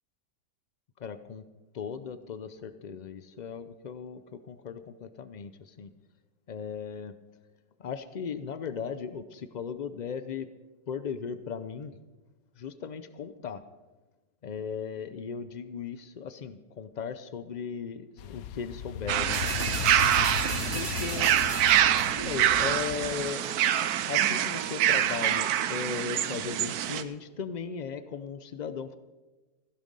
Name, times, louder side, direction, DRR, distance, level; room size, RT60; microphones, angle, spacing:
voice 1, 1.0-1.4 1.7-5.9 6.5-7.1 7.8-10.5 10.9-12.0 12.6-13.6 14.4-19.8 20.7-21.4 22.1-23.6 24.1-29.0, left 6 dB, 90° left, 12 dB, 0.4 m, -37 dB
sound 1, 18.2-23.1, left 9 dB, 75° left, 1.1 m, -37 dB
sound 2, 19.1-27.0, right 11 dB, 85° right, 1.2 m, -26 dB
sound 3, 19.3-22.3 22.8-22.9, right 1 dB, 15° right, 5.2 m, -37 dB
15.5 x 11.5 x 5.3 m, 1.2 s
omnidirectional pair, 1.6 m